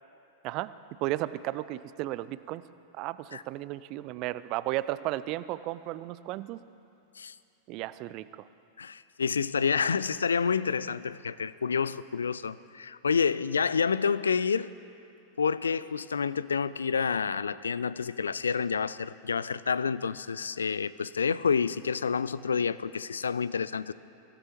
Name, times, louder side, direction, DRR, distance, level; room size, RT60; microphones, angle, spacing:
voice 1, 1.0-2.6 3.0-6.6 7.7-8.3, right 16 dB, 40° right, 16 dB, 0.4 m, -34 dB
voice 2, 8.8-14.7 15.4-23.9, left 6 dB, 70° left, 17 dB, 0.4 m, -29 dB
24.0 x 17.0 x 3.0 m, 2.7 s
figure-of-eight pair, 90°, 0 cm